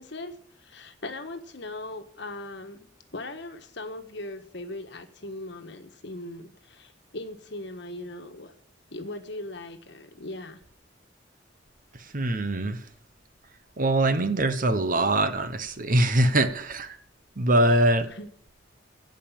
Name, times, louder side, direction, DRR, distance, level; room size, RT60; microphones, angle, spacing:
voice 1, 0.0-8.5 8.9-10.6 18.0-18.3, left 2 dB, 65° left, 7 dB, 1.4 m, -39 dB
voice 2, 12.1-12.8 13.8-17.0 17.4-18.1, right 1 dB, 45° right, 10 dB, 1.0 m, -23 dB
16.0 x 5.4 x 7.3 m, 0.63 s
head